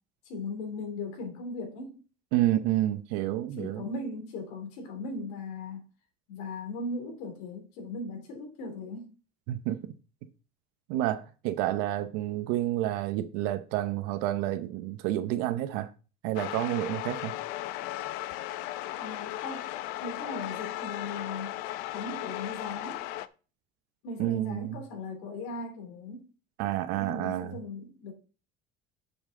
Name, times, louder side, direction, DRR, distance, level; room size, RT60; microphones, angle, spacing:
voice 1, 0.2-2.0 3.6-5.8 6.3-9.1 18.9-19.7 20.0-21.6 21.9-23.1 24.0-26.3 26.9-28.1, left 2 dB, 80° left, 3.3 m, -38 dB
voice 2, 2.3-3.9 9.5-9.8 10.9-15.9 16.2-17.3 24.2-24.8 26.6-27.5, right 14 dB, 75° right, 0.9 m, -29 dB
sound 1, 16.4-23.3, left 15 dB, 65° left, 0.6 m, -36 dB
8.6 x 7.2 x 3.8 m
cardioid pair, 175°, 17 cm